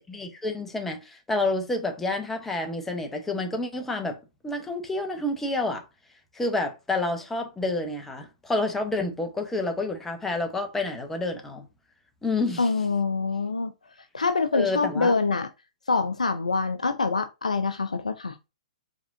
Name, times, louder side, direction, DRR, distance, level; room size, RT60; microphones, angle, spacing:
voice 1, 0.0-4.2 4.4-5.8 6.3-11.7 12.2-12.7 14.5-15.1, left 2 dB, 10° left, 0.9 m, -29 dB
voice 2, 12.6-13.7 14.1-15.5 15.9-18.4, left 4 dB, 80° left, 0.5 m, -25 dB
4.8 x 3.5 x 2.6 m
figure-of-eight pair, 120°, 4 cm